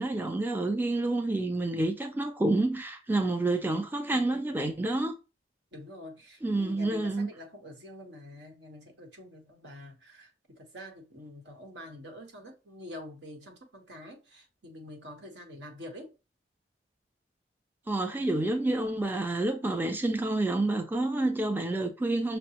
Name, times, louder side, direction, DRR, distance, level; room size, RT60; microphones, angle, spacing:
voice 1, 0.0-5.1 6.4-7.3 17.9-22.4, right 2 dB, 10° right, 0.3 m, -28 dB
voice 2, 5.7-16.1, left 1 dB, 75° right, 1.1 m, -46 dB
5.9 x 2.1 x 2.8 m
head